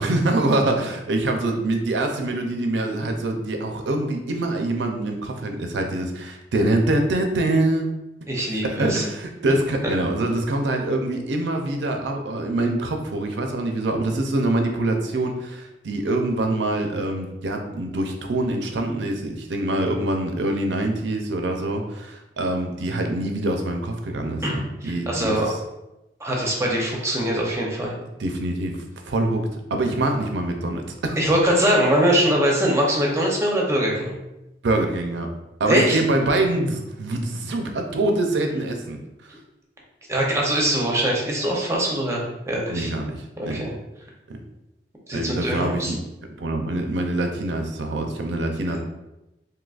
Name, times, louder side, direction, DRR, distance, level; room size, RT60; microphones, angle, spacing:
voice 1, 0.0-7.9 8.6-25.4 28.2-31.2 34.6-35.3 35.6-39.0 42.7-43.7 44.3-44.4 45.1-46.0 46.4-48.8, right 2 dB, 80° right, 4 dB, 0.5 m, -24 dB
voice 2, 8.3-9.0 24.4-24.5 25.1-25.5 26.2-27.9 31.2-34.2 35.6-36.0 40.1-42.9 43.4-43.7 45.1-45.9, equal, 15° right, -2 dB, 0.6 m, -22 dB
3.9 x 2.7 x 2.4 m, 0.94 s
head